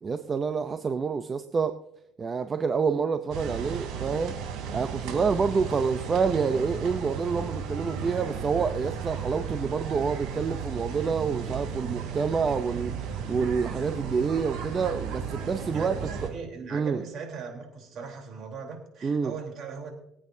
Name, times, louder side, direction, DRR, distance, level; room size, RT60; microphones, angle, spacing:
voice 1, 0.0-1.8 2.2-4.4 4.7-16.0 16.7-17.0 19.0-19.3, right 5 dB, 30° right, 0.6 m, -28 dB
sound 1, 3.3-16.3, right 6 dB, 80° right, 3.4 m, -34 dB
voice 2, 15.7-20.0, right 5 dB, 55° right, 3.6 m, -39 dB
23.5 x 8.7 x 2.7 m
cardioid pair, 115°, 0 cm